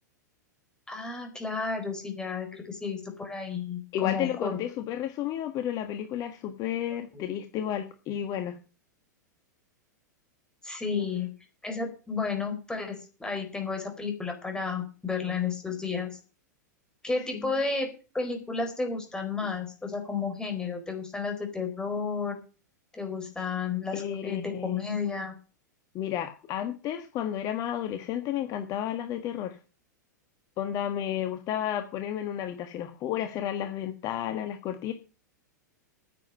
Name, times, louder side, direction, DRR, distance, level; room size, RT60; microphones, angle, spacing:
voice 1, 0.9-4.6 7.1-7.2 10.6-11.3 11.6-16.2 17.0-17.9 18.1-22.4 22.9-25.3, left 5 dB, 10° left, 4 dB, 4.4 m, -32 dB
voice 2, 3.9-8.6 10.9-11.1 17.3-17.5 23.9-24.8 25.9-29.6 30.6-34.9, left 10 dB, 35° left, 8 dB, 1.5 m, -32 dB
9.9 x 7.6 x 9.1 m, 0.35 s
figure-of-eight pair, 95°, 10 cm